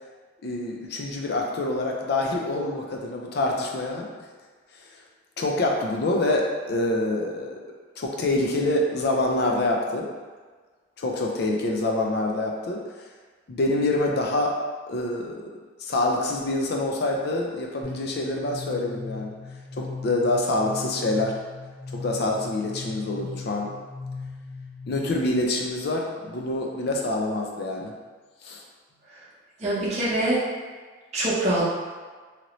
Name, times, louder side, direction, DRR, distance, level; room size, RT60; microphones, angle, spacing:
voice 1, 0.4-4.1 5.4-7.6 8.0-10.1 11.0-12.8 13.5-14.6 14.9-15.4 15.8-19.3 19.7-21.4 21.9-23.7 24.9-27.9 28.4-28.6, left 2 dB, 55° left, 0 dB, 0.4 m, -26 dB
sound 1, 17.8-25.4, left 4 dB, 15° left, 0.7 m, -38 dB
voice 2, 29.6-30.4 31.1-31.6, right 1 dB, 35° right, -8 dB, 0.7 m, -24 dB
2.9 x 2.6 x 3.0 m, 1.5 s
head